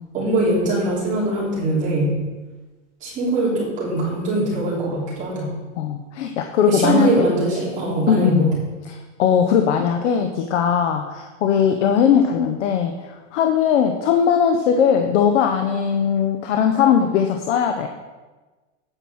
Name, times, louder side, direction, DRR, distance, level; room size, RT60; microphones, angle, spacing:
voice 1, 0.1-2.1 3.0-5.6 6.7-8.5, right 2 dB, 20° right, -6 dB, 3.2 m, -21 dB
voice 2, 5.8-7.3 8.1-17.9, left 7 dB, 70° left, 5 dB, 0.9 m, -19 dB
9.0 x 5.9 x 6.3 m, 1.2 s
supercardioid pair, 170°, 37 cm